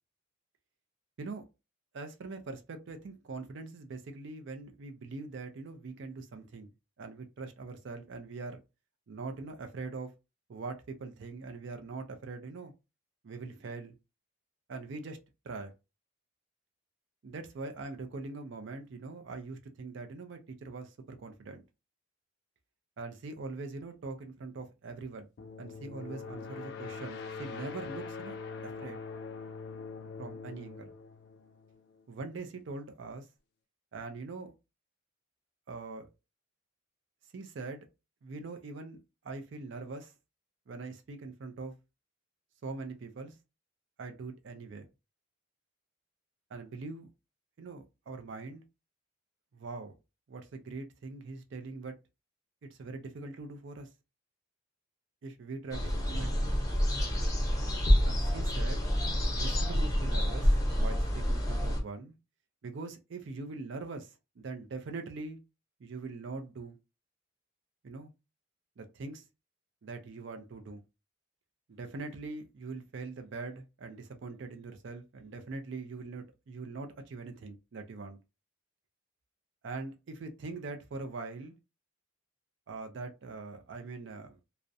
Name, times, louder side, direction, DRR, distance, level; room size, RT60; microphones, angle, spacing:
voice 1, 1.9-6.7 7.0-8.6 9.1-10.1 10.5-12.7 13.2-13.9 14.7-15.2 15.4-15.7 17.2-21.6 23.0-25.3 25.6-28.3 28.6-29.0 30.2-30.9 32.1-33.3 33.9-34.5 35.7-36.1 37.3-37.8 38.2-39.0 39.2-40.1 40.7-41.7 42.6-43.4 44.0-44.9 46.5-47.1 47.6-48.6 49.5-49.9 50.3-52.0 52.6-53.9 55.2-56.5 58.0-58.8 59.4-62.1 62.6-65.4 65.8-66.8 67.8-68.1 68.8-69.2 69.8-70.8 71.7-78.2 79.6-81.5 82.7-84.4, right 3 dB, 60° right, 0.4 m, -42 dB
sound 1, 25.4-32.0, left 5 dB, 55° left, 0.3 m, -43 dB
sound 2, 55.7-61.8, equal, 15° left, 0.6 m, -28 dB
2.4 x 2.0 x 2.6 m
head